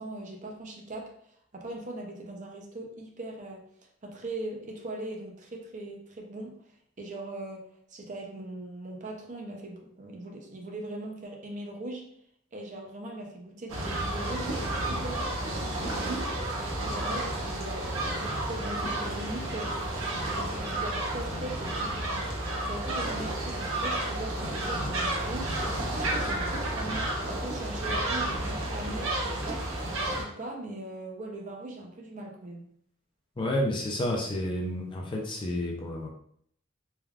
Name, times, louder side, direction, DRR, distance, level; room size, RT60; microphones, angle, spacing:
voice 1, 0.0-3.7 4.0-6.5 7.0-12.1 12.5-16.4 16.8-19.8 20.4-22.4 22.7-25.6 25.9-29.6 30.2-32.7, right 2 dB, 35° right, 0 dB, 0.5 m, -40 dB
sound 1, 13.7-30.2, right 1 dB, 85° right, 0.7 m, -31 dB
voice 2, 33.4-36.1, left 1 dB, 25° left, 0 dB, 0.4 m, -30 dB
3.3 x 2.3 x 2.3 m, 0.67 s
head